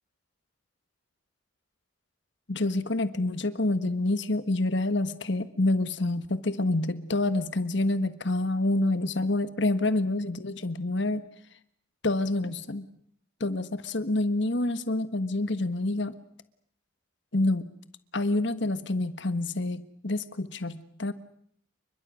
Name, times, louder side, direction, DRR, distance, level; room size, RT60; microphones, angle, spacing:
voice 1, 2.5-11.2 12.0-12.8 13.4-16.2 17.3-17.7 18.1-21.1, left 2 dB, 60° left, 13 dB, 1.5 m, -27 dB
29.5 x 24.5 x 6.3 m, 0.66 s
head